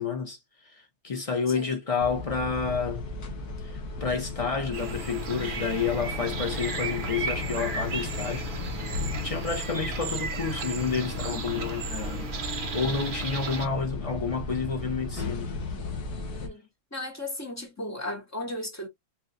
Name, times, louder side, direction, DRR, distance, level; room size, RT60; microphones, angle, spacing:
voice 1, 0.0-3.0 3.6-8.5 8.9-12.3 12.7-15.5, left 5 dB, 55° left, 0.3 m, -30 dB
sound 1, 2.0-16.5, left 2 dB, 70° left, 1.6 m, -35 dB
sound 2, 4.7-13.7, right 4 dB, 45° right, 0.7 m, -35 dB
voice 2, 15.6-16.0 16.4-16.6 16.9-18.9, left 1 dB, 10° left, 1.1 m, -36 dB
4.5 x 2.8 x 2.5 m
omnidirectional pair, 1.7 m